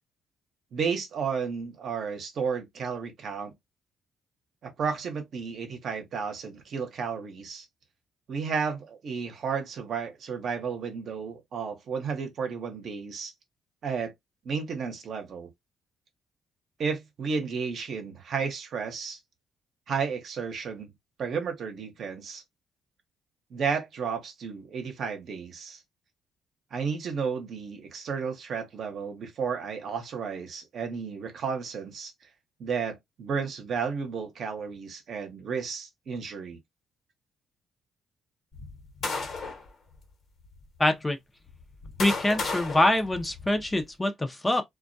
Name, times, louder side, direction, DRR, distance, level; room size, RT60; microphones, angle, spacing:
voice 1, 0.7-3.5 4.6-7.7 8.3-13.3 13.8-14.1 14.4-15.5 16.8-19.2 19.9-20.9 21.2-22.4 23.5-25.8 26.7-32.1 32.6-36.6, right 6 dB, 60° right, 0.8 m, -32 dB
sound 1, 38.5-39.7 40.4-40.6 41.5-43.8, left 3 dB, 55° left, 1.0 m, -34 dB
voice 2, 40.8-41.2 42.0-44.6, left 1 dB, 15° left, 0.5 m, -24 dB
2.2 x 2.1 x 2.6 m
cardioid pair, 90°, 0 cm